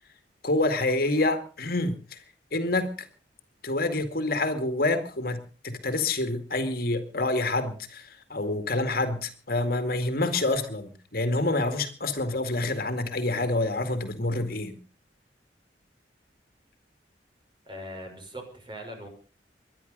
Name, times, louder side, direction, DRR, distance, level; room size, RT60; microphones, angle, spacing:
voice 1, 0.4-2.2 2.5-2.9 3.6-14.7, left 2 dB, 55° left, 8 dB, 2.2 m, -27 dB
voice 2, 17.7-19.1, equal, 25° right, 4 dB, 5.9 m, -40 dB
23.0 x 10.5 x 5.4 m, 0.38 s
head